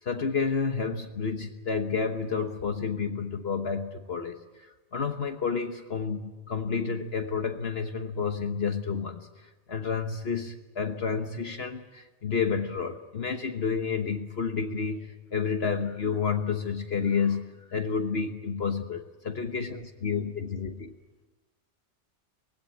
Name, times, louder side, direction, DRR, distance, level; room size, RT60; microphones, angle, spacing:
voice 1, 0.0-20.9, left 5 dB, 60° left, 5 dB, 1.4 m, -30 dB
voice 2, 20.8-21.2, left 1 dB, 15° right, 2 dB, 5.5 m, -73 dB
24.5 x 20.0 x 8.4 m, 1.2 s
omnidirectional pair, 1.2 m